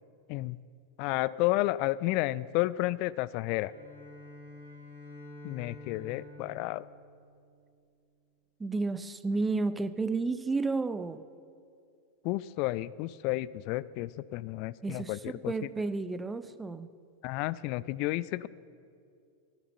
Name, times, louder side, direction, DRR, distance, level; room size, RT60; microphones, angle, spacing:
voice 1, 1.0-3.7 5.4-6.8 12.2-15.5 17.2-18.5, left 18 dB, 45° left, 20 dB, 0.3 m, -31 dB
Bowed string instrument, 3.6-8.0, left 1 dB, 90° left, 4.2 m, -49 dB
voice 2, 8.6-11.2 14.8-16.9, right 3 dB, 10° right, 13 dB, 0.6 m, -32 dB
11.5 x 10.0 x 8.0 m, 2.4 s
figure-of-eight pair, 90°, 0 cm